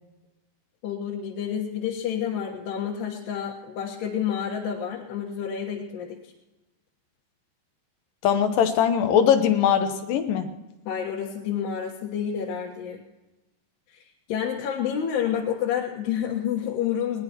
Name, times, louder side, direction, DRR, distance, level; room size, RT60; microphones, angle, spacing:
voice 1, 0.8-6.3 10.9-13.0 13.9-14.0 14.3-17.2, left 8 dB, 90° left, -3 dB, 3.6 m, -29 dB
voice 2, 8.2-10.5, left 8 dB, 70° left, 7 dB, 2.4 m, -21 dB
21.0 x 19.5 x 3.0 m, 1.1 s
omnidirectional pair, 4.6 m